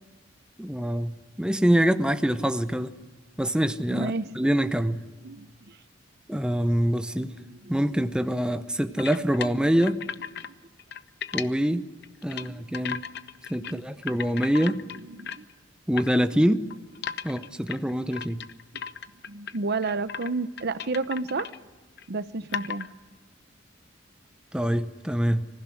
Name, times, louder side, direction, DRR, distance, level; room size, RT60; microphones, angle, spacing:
voice 1, 0.6-2.9 3.4-5.0 6.3-7.3 7.7-10.0 11.3-11.9 12.2-13.0 13.5-14.9 15.9-16.7 17.2-18.4 24.5-25.5, equal, 5° right, 10 dB, 0.7 m, -25 dB
voice 2, 3.9-4.3 5.2-5.8 7.4-7.8 12.3-12.6 13.2-13.3 13.6-13.8 15.0-15.5 19.3-21.5 22.1-22.9, right 3 dB, 55° right, 14 dB, 0.8 m, -31 dB
sound 1, 9.0-10.5 10.8-11.5 12.0-12.5 12.7-13.7 14.0-15.5 16.0-16.1 16.7-19.6 19.8-20.3 20.6-21.6 22.0-22.1 22.5-22.9, left 7 dB, 60° left, 0.9 m, -35 dB
25.5 x 15.5 x 9.9 m, 1.3 s
head